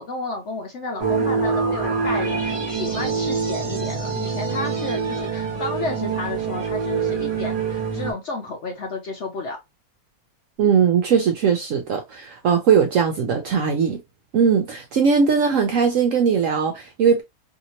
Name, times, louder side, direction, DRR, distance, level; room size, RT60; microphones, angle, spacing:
voice 1, 0.0-9.6, left 3 dB, 65° left, 0.7 m, -31 dB
sound 1, 1.0-8.1, right 5 dB, 35° right, 1.1 m, -25 dB
voice 2, 10.6-14.0 14.3-17.2, right 6 dB, 70° right, 0.8 m, -19 dB
2.8 x 2.7 x 2.8 m
omnidirectional pair, 1.8 m